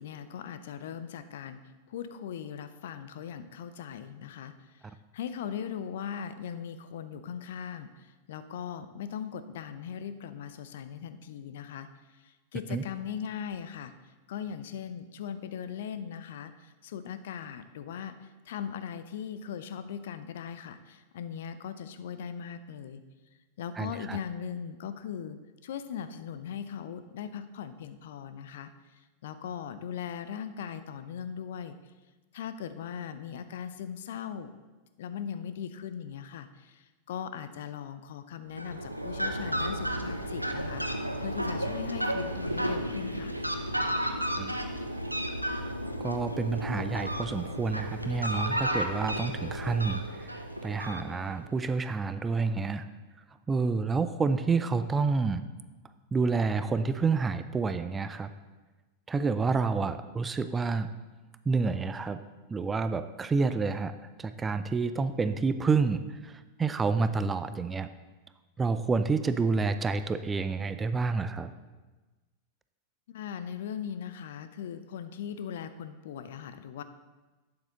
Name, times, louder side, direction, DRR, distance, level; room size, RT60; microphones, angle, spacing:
voice 1, 0.0-1.6 1.9-11.9 12.1-13.9 14.3-23.0 23.6-28.7 29.2-31.8 32.3-34.5 35.0-43.3 73.1-76.8, left 8 dB, 55° left, 11 dB, 0.6 m, -39 dB
voice 2, 23.8-24.2 44.4-44.5 46.0-52.9 53.5-55.4 56.1-58.3 59.1-60.9 61.5-62.2 62.5-67.9 68.6-71.5, right 4 dB, 15° right, 11 dB, 0.5 m, -29 dB
Fowl, 38.5-51.5, equal, 90° right, 0.7 m, -33 dB
11.5 x 8.7 x 3.8 m, 1.2 s
figure-of-eight pair, 90°, 0 cm